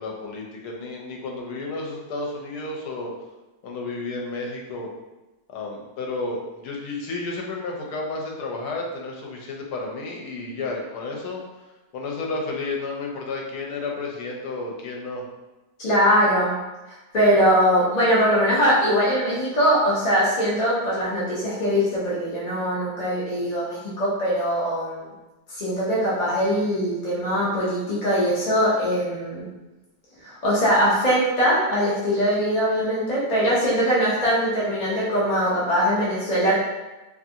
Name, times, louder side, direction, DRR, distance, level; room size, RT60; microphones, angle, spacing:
voice 1, 0.0-3.1 3.6-4.9 5.5-11.4 11.9-15.2, left 3 dB, 80° left, -1 dB, 1.1 m, -32 dB
voice 2, 15.8-16.6 16.9-25.1 25.5-29.5 30.2-36.6, equal, 60° left, -8 dB, 0.4 m, -21 dB
2.9 x 2.5 x 2.6 m, 1.1 s
omnidirectional pair, 1.6 m